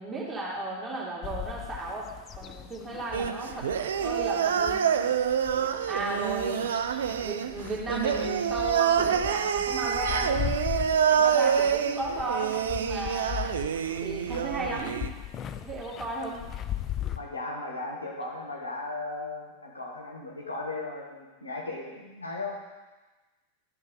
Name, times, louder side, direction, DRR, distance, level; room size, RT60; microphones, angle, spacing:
voice 1, 0.0-2.1 2.4-3.6 4.0-4.8 5.9-6.7 7.2-10.5 11.2-13.5 14.0-15.1 15.6-16.4, right 2 dB, 10° right, -5 dB, 2.4 m, -34 dB
sound 1, 1.2-17.2, left 11 dB, 30° left, 0.4 m, -39 dB
Faux Native American Chant, 3.1-15.1, right 8 dB, 65° right, 0.4 m, -27 dB
voice 2, 17.1-22.6, left 2 dB, 80° left, -2 dB, 1.5 m, -36 dB
12.0 x 5.1 x 3.8 m, 1.2 s
figure-of-eight pair, 90°, 0 cm